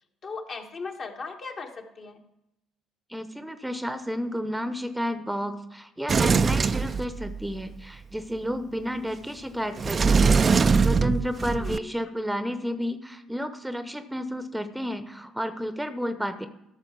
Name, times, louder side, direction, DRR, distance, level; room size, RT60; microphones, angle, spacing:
voice 1, 0.2-2.2 11.4-11.9, left 4 dB, 45° left, 3 dB, 1.3 m, -38 dB
voice 2, 3.1-16.5, equal, 5° right, 11 dB, 0.8 m, -32 dB
Sliding door, 6.1-7.6 9.8-11.8, right 5 dB, 35° right, 0.4 m, -22 dB
13.5 x 6.5 x 4.6 m, 0.88 s
figure-of-eight pair, 50°, 0 cm